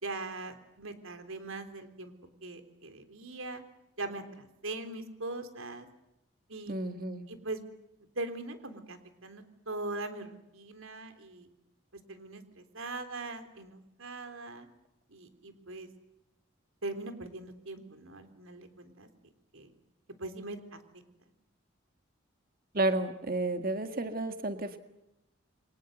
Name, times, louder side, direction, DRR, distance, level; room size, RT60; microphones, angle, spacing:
voice 1, 0.0-2.1 2.4-3.6 4.0-5.9 6.5-6.7 7.3-7.6 8.2-11.5 12.1-14.7 15.1-15.9 16.8-19.1 19.5-19.7 20.2-20.8, right 2 dB, 80° right, 8 dB, 3.7 m, -41 dB
voice 2, 6.7-7.2 22.7-24.8, right 2 dB, 45° right, 8 dB, 1.8 m, -31 dB
29.5 x 24.0 x 8.0 m, 0.91 s
head